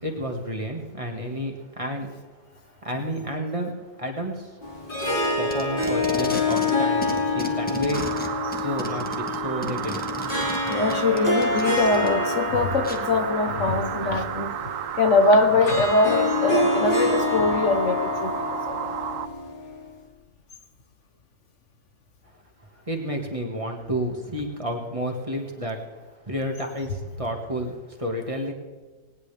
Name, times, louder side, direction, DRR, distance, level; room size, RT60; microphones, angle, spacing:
voice 1, 0.0-2.1 2.8-3.7 4.0-4.5 5.4-8.0 8.5-10.0 22.9-25.8 26.2-28.5, equal, 25° right, 2 dB, 2.0 m, -30 dB
Harp, 4.6-19.9, left 2 dB, 40° left, 2.8 m, -27 dB
Packing tape duct tape, 5.0-6.8 7.0-12.1 12.8-13.0, equal, 5° left, 1.7 m, -36 dB
sound 1, 7.9-19.3, right 9 dB, 85° right, 1.1 m, -32 dB
voice 2, 10.7-14.6 15.0-18.9, left 3 dB, 65° left, 7 dB, 1.5 m, -22 dB
19.0 x 19.0 x 3.5 m, 1.3 s
omnidirectional pair, 1.3 m